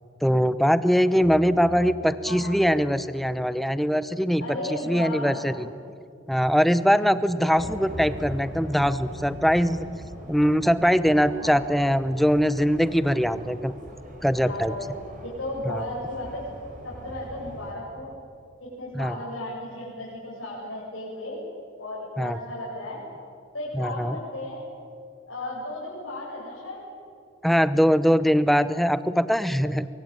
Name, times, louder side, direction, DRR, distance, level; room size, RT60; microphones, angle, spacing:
voice 1, 0.2-4.4 4.7-5.7 6.3-9.9 10.3-13.7 14.2-14.7 15.7-15.8 18.9-19.2 22.2-22.4 23.7-24.2 27.4-29.9, equal, ahead, 14 dB, 0.7 m, -22 dB
sound 1, 1.2-3.6, equal, 15° right, 2.6 m, -44 dB
voice 2, 2.2-2.6 4.4-5.4 7.4-7.7 11.2-11.6 14.4-14.9 15.2-16.4 16.8-18.1 18.6-21.4 21.8-23.0 23.5-24.6 25.3-26.8, left 1 dB, 75° left, -7 dB, 7.2 m, -35 dB
sound 2, 7.6-17.7, equal, 40° right, 4.5 m, -41 dB
24.0 x 23.0 x 9.0 m, 2.4 s
head